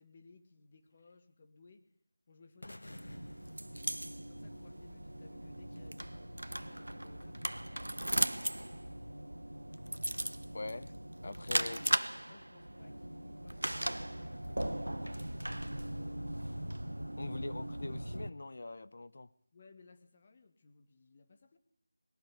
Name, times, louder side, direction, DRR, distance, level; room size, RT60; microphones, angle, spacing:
voice 1, 0.0-1.8 2.3-2.8 4.2-8.6 12.2-16.4 19.5-21.6, left 4 dB, 30° left, 2.3 m, -61 dB
sound 1, 2.6-4.7, left 1 dB, 75° left, 1.4 m, -52 dB
sound 2, 2.9-18.3, right 1 dB, 90° right, 1.1 m, -38 dB
voice 2, 10.5-10.9 11.2-11.9 17.2-19.3, left 2 dB, 50° left, 1.0 m, -43 dB
21.5 x 13.0 x 9.9 m
figure-of-eight pair, 165°, 0 cm